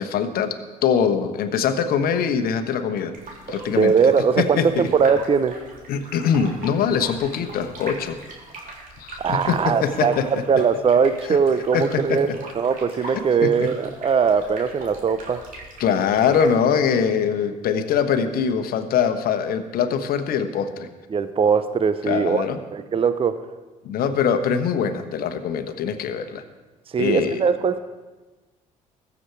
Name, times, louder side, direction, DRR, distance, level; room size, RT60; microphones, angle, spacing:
voice 1, 0.0-3.1 3.5-4.9 5.9-8.2 9.0-10.4 11.3-11.4 11.7-12.2 13.0-13.7 15.8-20.9 22.1-22.6 23.8-26.4 27.0-27.4, left 7 dB, 55° left, 9 dB, 1.2 m, -23 dB
sound 1, 3.1-16.5, right 3 dB, 50° right, 3.5 m, -40 dB
voice 2, 3.7-5.6 9.2-12.3 12.6-15.4 21.1-22.4 22.7-23.4 26.9-27.8, right 6 dB, 30° right, 12 dB, 0.7 m, -20 dB
21.5 x 7.2 x 4.6 m, 1.2 s
hypercardioid pair, 50°, 18 cm